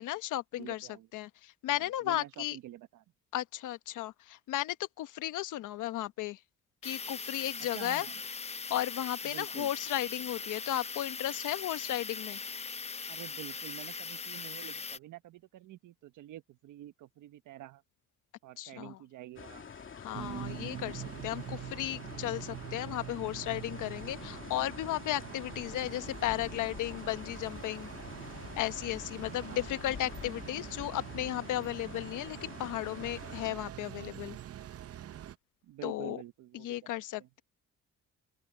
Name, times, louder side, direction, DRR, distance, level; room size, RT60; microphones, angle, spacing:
voice 1, 0.0-2.6 3.3-6.4 6.8-8.1 8.7-12.4 18.6-19.0 19.9-27.9 28.6-34.4 35.8-36.2 36.5-37.4, left 14 dB, 85° left, 1.2 m, -35 dB
voice 2, 0.6-1.1 1.7-3.0 7.6-8.1 9.2-9.7 13.1-17.8 18.4-19.7 29.4-29.7 35.6-36.9 37.2-37.3, right 14 dB, 85° right, 1.4 m, -48 dB
sound 1, 6.8-15.0, left 5 dB, 20° left, 0.6 m, -40 dB
sound 2, 19.4-33.5, left 6 dB, 40° left, 2.8 m, -47 dB
sound 3, 20.1-35.4, right 11 dB, 50° right, 0.8 m, -44 dB
open air
cardioid pair, 90°, 30 cm